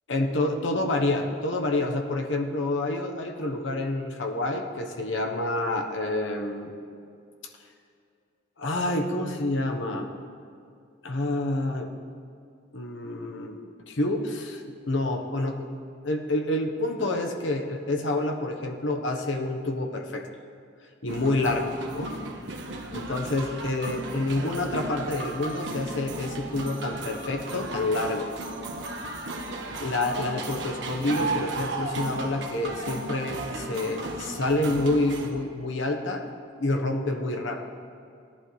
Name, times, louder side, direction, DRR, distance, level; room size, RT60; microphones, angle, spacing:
voice 1, 0.1-6.7 8.6-10.1 11.0-11.9 12.7-20.3 21.0-22.1 22.5-22.6 22.9-28.3 29.8-36.2 36.5-37.7, left 2 dB, 85° left, 4 dB, 1.1 m, -28 dB
sound 1, 21.1-35.3, right 2 dB, 70° right, 1.2 m, -35 dB
17.5 x 11.0 x 3.2 m, 2.4 s
head